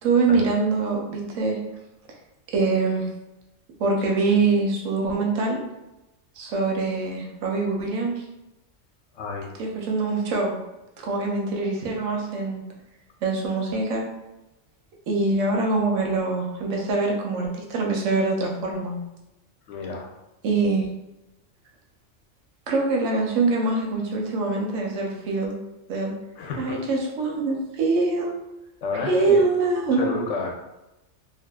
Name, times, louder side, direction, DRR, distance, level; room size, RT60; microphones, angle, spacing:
voice 1, 0.0-1.6 2.5-3.1 3.8-5.6 6.4-8.2 9.6-10.6 11.0-12.6 13.2-14.0 15.1-18.9 20.4-20.9 22.7-25.5 25.9-26.1 26.6-28.3 29.0-30.1, right 3 dB, 85° right, 0 dB, 1.0 m, -24 dB
voice 2, 9.1-9.5 19.7-20.1 26.4-26.8 28.8-29.4 29.9-30.5, left 3 dB, 85° left, 0 dB, 0.9 m, -30 dB
2.6 x 2.3 x 2.2 m, 0.94 s
omnidirectional pair, 1.3 m